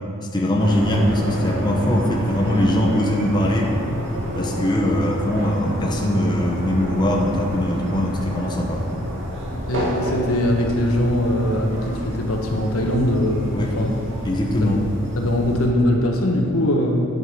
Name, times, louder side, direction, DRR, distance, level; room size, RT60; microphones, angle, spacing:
voice 1, 0.3-3.7 4.3-8.8 13.5-13.7 14.2-14.9, left 1 dB, 20° left, -1 dB, 1.1 m, -21 dB
sound 1, 0.6-15.7, equal, 55° right, 2.4 m, -29 dB
voice 2, 9.7-14.0 14.6-14.8 15.2-17.1, left 1 dB, 85° left, 1 dB, 1.4 m, -21 dB
9.3 x 8.0 x 6.3 m, 2.3 s
head